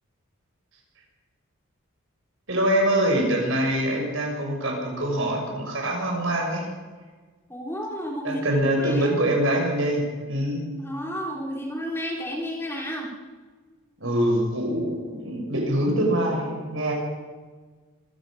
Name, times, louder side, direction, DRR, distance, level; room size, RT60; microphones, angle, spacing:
voice 1, 2.5-6.7 8.2-10.6 14.0-16.9, right 1 dB, 60° right, 0 dB, 6.5 m, -24 dB
voice 2, 7.5-8.4 8.8-9.3 10.7-13.1, equal, 10° left, -1 dB, 3.6 m, -32 dB
25.5 x 16.0 x 6.5 m, 1.4 s
head